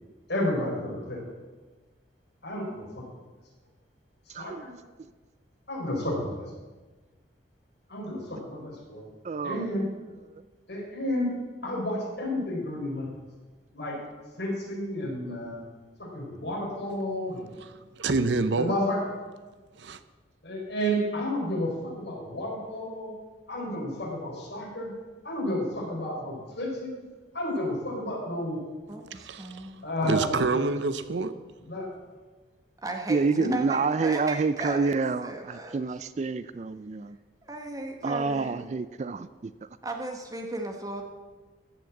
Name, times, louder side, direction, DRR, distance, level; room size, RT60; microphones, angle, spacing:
voice 1, 0.3-1.2 2.4-3.0 4.4-4.7 5.7-6.3 7.9-9.0 9.4-9.9 10.7-11.3 11.6-13.1 13.7-14.0 14.4-15.6 16.1-17.5 18.1-18.2 18.5-19.0 20.4-23.1 23.5-24.9 25.2-27.0 27.3-28.6 29.8-30.2 31.7-31.9 33.3-33.5, left 1 dB, 65° left, -3 dB, 4.5 m, -31 dB
voice 2, 4.3-4.7 9.2-9.8 30.0-30.5 33.1-37.2 38.0-39.5, right 4 dB, 35° right, 14 dB, 0.3 m, -28 dB
voice 3, 18.0-18.8 19.8-20.0 29.1-29.7 30.1-31.3, right 3 dB, 70° right, 12 dB, 0.7 m, -27 dB
voice 4, 28.9-29.8 32.8-33.2 33.5-36.0 37.4-38.7 39.8-41.0, right 2 dB, 20° right, 2 dB, 1.1 m, -36 dB
14.5 x 6.1 x 7.1 m, 1.3 s
head